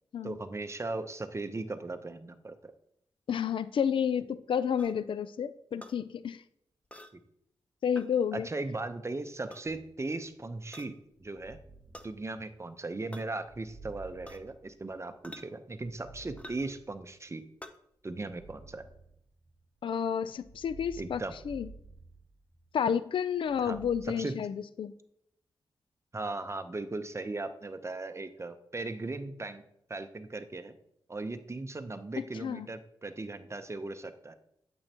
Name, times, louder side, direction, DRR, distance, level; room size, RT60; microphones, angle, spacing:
voice 1, 0.2-2.7 8.3-10.9 11.2-11.6 12.0-17.4 18.0-18.8 21.0-21.3 23.6-24.4 26.1-29.6 29.9-30.8 31.1-34.3, right 2 dB, 30° right, 10 dB, 0.7 m, -38 dB
voice 2, 3.3-6.4 7.8-8.5 19.8-21.7 22.7-24.9 32.4-32.7, left 7 dB, 65° left, 15 dB, 0.4 m, -30 dB
sound 1, 4.8-5.0 5.8-5.9 6.9-7.2 8.0-8.1 9.3-9.7 10.7-10.9 11.9-12.1 13.1-13.3 14.3-14.5 15.2-15.5 16.4-16.7 17.6-17.8, left 1 dB, 15° left, 0.7 m, -47 dB
sound 2, 9.6-10.4 11.1-12.8 13.4-15.2 15.7-17.3 18.1-19.7 20.3-22.8 23.4-24.0, right 3 dB, 15° right, 1.4 m, -53 dB
8.7 x 7.1 x 2.9 m, 0.75 s
cardioid pair, 55°, 9 cm